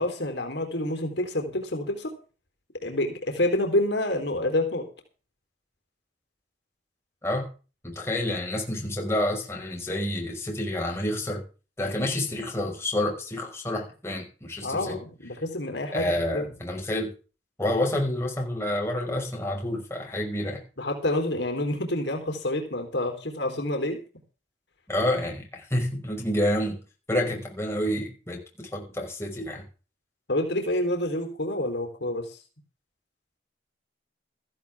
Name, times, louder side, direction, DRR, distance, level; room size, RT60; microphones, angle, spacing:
voice 1, 0.0-2.1 2.8-4.9 14.6-16.5 20.8-24.0 30.3-32.4, left 1 dB, 70° left, 4 dB, 4.0 m, -28 dB
voice 2, 7.8-11.4 11.8-15.0 15.9-17.1 17.6-20.6 24.9-26.8 27.1-29.6, left 1 dB, 15° left, -1 dB, 5.5 m, -28 dB
16.5 x 14.5 x 3.7 m, 0.35 s
head